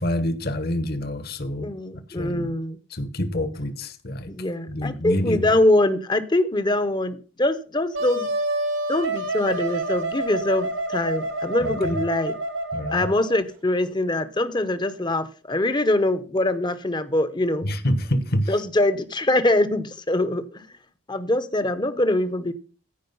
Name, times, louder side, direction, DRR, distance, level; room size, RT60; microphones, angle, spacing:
voice 1, 0.0-1.7 2.1-2.5 2.9-4.3 4.7-5.5 11.6-12.0 12.7-13.1 17.6-18.5, equal, 50° left, 1.2 m, -27 dB
voice 2, 1.6-2.8 4.3-8.3 8.9-12.3 12.9-17.7 18.5-20.7 21.1-22.5, left 1 dB, 20° left, 0.8 m, -23 dB
Wind instrument woodwind instrument, 7.9-13.4, right 2 dB, 90° right, 2.9 m, -28 dB
15.0 x 5.0 x 5.4 m
head